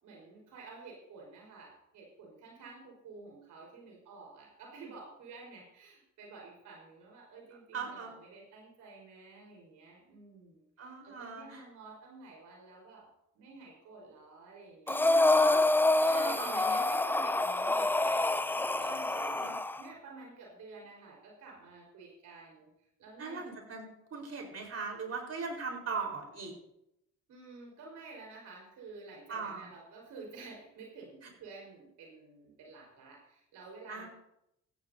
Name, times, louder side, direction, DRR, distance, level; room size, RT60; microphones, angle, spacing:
voice 1, 0.0-13.0 13.3-15.6 16.0-18.5 18.8-19.2 19.8-22.7 23.0-23.4 27.3-34.1, right 3 dB, 85° right, -1 dB, 4.6 m, -50 dB
voice 2, 7.7-8.1 10.8-11.6 14.9-15.6 16.1-16.8 19.1-19.6 23.2-26.5 29.3-29.6 33.9-34.1, right 4 dB, 55° right, 1 dB, 4.4 m, -40 dB
Breathing, 14.9-19.8, left 2 dB, 5° left, 0.4 m, -27 dB
15.5 x 15.0 x 2.8 m, 0.81 s
cardioid pair, 90°, 30 cm